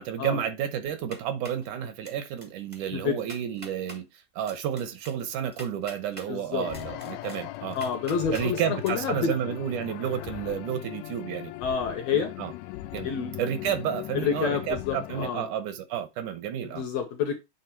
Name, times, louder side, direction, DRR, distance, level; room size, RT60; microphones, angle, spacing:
voice 1, 0.0-7.8 8.3-11.5 12.1-12.5 12.9-13.1 13.4-16.8, right 9 dB, 75° right, 2.3 m, -31 dB
sound 1, 0.8-1.6 2.0-2.4 2.7-2.8 3.2-4.0 4.5-6.3 6.7-8.5 8.8-8.9, right 1 dB, 35° right, 0.5 m, -45 dB
voice 2, 6.3-6.7 7.7-9.5 11.6-12.3 13.0-13.4 14.2-15.5 16.6-17.4, left 6 dB, 70° left, 1.7 m, -28 dB
sound 2, 6.6-15.3, left 16 dB, 85° left, 1.6 m, -39 dB
8.1 x 3.5 x 4.4 m
omnidirectional pair, 3.7 m